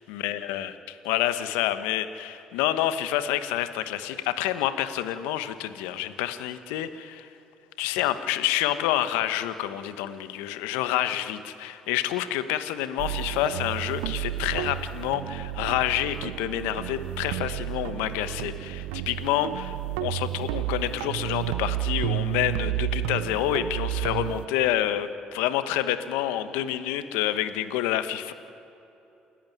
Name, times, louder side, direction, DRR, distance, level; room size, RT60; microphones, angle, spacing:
voice 1, 0.1-7.3 7.8-28.3, left 12 dB, 80° left, 11 dB, 1.1 m, -28 dB
sound 1, 13.0-24.4, right 14 dB, 80° right, 0.5 m, -31 dB
28.0 x 11.5 x 9.9 m, 2.9 s
hypercardioid pair, 60°, 3 cm